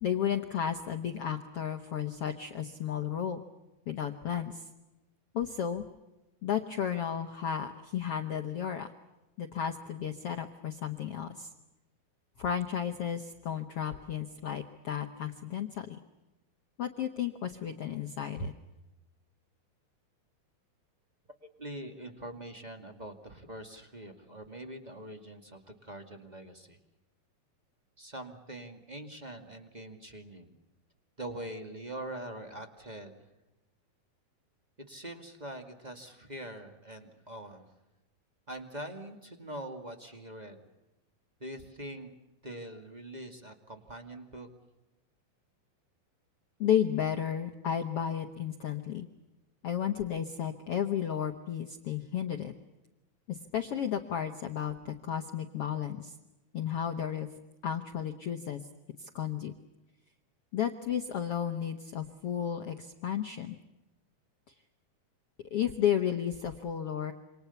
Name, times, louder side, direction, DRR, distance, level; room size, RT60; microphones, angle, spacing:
voice 1, 0.0-3.4 3.9-4.7 5.3-5.8 6.4-8.9 9.4-11.5 12.4-16.0 16.8-18.5 46.6-49.1 49.6-52.5 53.3-56.1 56.5-57.3 57.6-58.6 59.0-59.5 60.5-63.6 65.5-67.1, left 9 dB, 70° left, 6 dB, 1.4 m, -33 dB
voice 2, 21.4-26.8 28.0-30.5 31.2-33.2 34.9-37.6 38.5-40.6 41.4-42.1 42.4-44.5, right 1 dB, 15° right, 6 dB, 1.4 m, -43 dB
28.0 x 26.0 x 7.1 m, 1.0 s
omnidirectional pair, 4.4 m